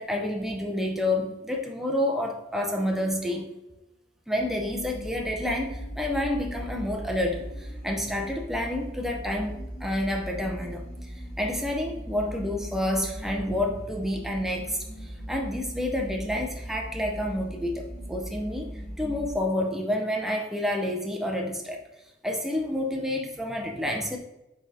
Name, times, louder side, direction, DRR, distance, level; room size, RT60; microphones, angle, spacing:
voice 1, 0.0-3.5 4.3-10.8 11.4-18.7 19.0-21.8 22.2-24.2, left 1 dB, ahead, 1 dB, 0.4 m, -29 dB
sound 1, 4.3-19.3, equal, 50° left, 1.2 m, -39 dB
5.1 x 4.0 x 2.6 m, 0.94 s
head